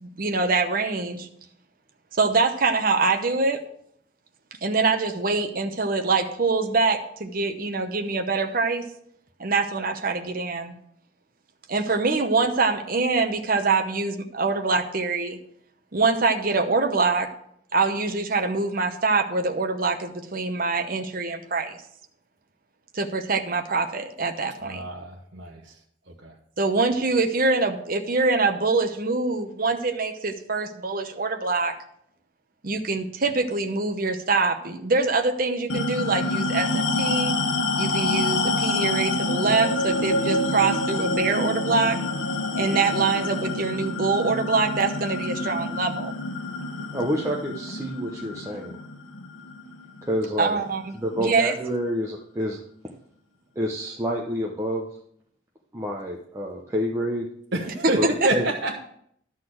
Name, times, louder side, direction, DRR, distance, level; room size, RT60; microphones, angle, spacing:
voice 1, 0.0-1.3 2.2-3.6 4.6-8.8 9.4-10.7 11.7-15.4 15.9-17.3 17.7-21.8 22.9-24.8 26.6-31.7 32.6-37.3 37.8-42.0 42.6-46.1 50.4-51.5 57.8-57.9, right 3 dB, 45° right, 5 dB, 0.9 m, -24 dB
voice 2, 24.6-25.8 26.1-26.3 57.5-58.7, right 2 dB, 65° right, -3 dB, 1.2 m, -28 dB
sound 1, 35.7-50.5, left 2 dB, 90° left, 1.0 m, -27 dB
voice 3, 46.9-48.8 50.0-50.6 50.9-52.6 53.6-54.9 55.7-57.3 58.0-58.1 58.3-58.5, equal, 15° right, -2 dB, 0.8 m, -28 dB
12.0 x 4.1 x 7.7 m, 0.69 s
head